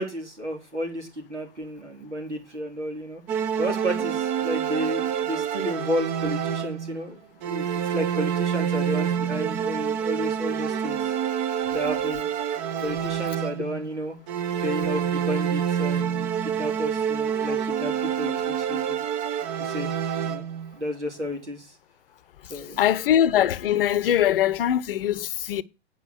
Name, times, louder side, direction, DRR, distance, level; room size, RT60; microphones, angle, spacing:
voice 1, 0.0-3.2 3.6-11.1 11.7-12.2 12.8-14.2 14.6-19.0 19.6-19.9 20.2-20.5 20.7-21.8 22.5-22.9, equal, 85° right, 4.0 m, -32 dB
sound 1, 3.3-7.0 7.4-13.9 14.3-20.7, right 8 dB, 25° right, 0.9 m, -27 dB
voice 2, 22.8-25.6, left 10 dB, 55° left, 0.8 m, -22 dB
9.5 x 5.4 x 6.5 m
figure-of-eight pair, 110°, 34 cm